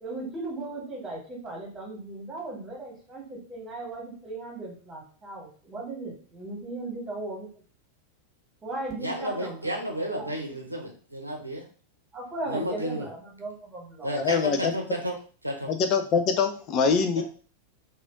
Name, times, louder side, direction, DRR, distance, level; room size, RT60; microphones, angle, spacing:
voice 1, 0.0-7.5 8.6-10.3 12.1-14.1, right 2 dB, 15° right, -2 dB, 1.7 m, -37 dB
voice 2, 9.0-11.6 12.5-13.1 14.0-15.2 15.4-15.7, equal, 85° right, 2 dB, 0.7 m, -32 dB
voice 3, 14.2-14.7 15.7-17.2, left 5 dB, 35° left, 6 dB, 0.4 m, -24 dB
3.2 x 2.5 x 3.7 m, 0.41 s
figure-of-eight pair, 90°, 0 cm